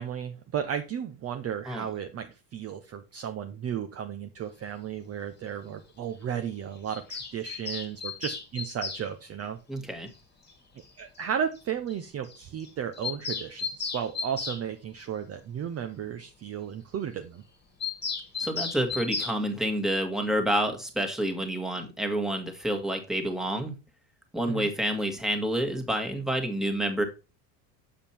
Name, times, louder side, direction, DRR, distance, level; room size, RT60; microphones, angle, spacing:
voice 1, 0.0-9.6 11.0-17.4 24.5-24.7, right 8 dB, 30° right, 7 dB, 0.7 m, -34 dB
Bird vocalization bird call bird song, 6.9-9.0 10.5-10.6 10.8-10.9 11.2-11.3 11.6-11.7 11.9-12.0 12.2-12.4 12.6-14.6 17.8-19.4, left 5 dB, 20° left, 1.8 m, -34 dB
voice 2, 9.7-10.1 18.4-23.7 24.3-27.0, right 1 dB, ahead, 3 dB, 1.7 m, -28 dB
7.3 x 5.2 x 4.3 m, 0.29 s
supercardioid pair, 105°, 49 cm